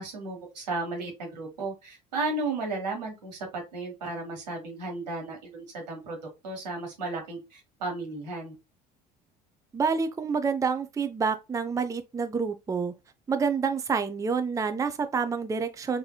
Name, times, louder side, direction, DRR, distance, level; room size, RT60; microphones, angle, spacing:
voice 1, 0.0-6.2 6.4-8.6, right 3 dB, 85° right, 1.3 m, -34 dB
voice 2, 9.7-12.9 13.3-16.0, right 5 dB, 15° right, 0.5 m, -28 dB
4.1 x 2.7 x 2.2 m
hypercardioid pair, 65°, 21 cm